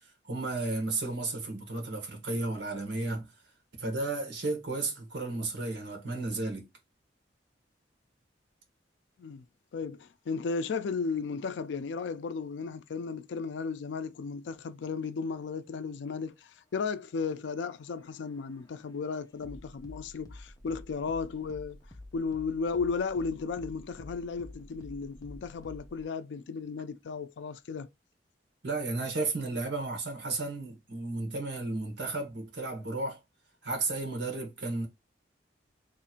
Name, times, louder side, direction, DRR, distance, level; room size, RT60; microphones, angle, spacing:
voice 1, 0.0-3.3 3.8-6.7 28.6-33.2 33.6-34.9, right 3 dB, 70° right, 1.3 m, -33 dB
voice 2, 9.7-21.8 22.1-27.9, left 5 dB, 75° left, 0.4 m, -35 dB
sound 1, 17.6-26.0, left 1 dB, 20° left, 0.6 m, -50 dB
3.1 x 2.5 x 4.3 m
head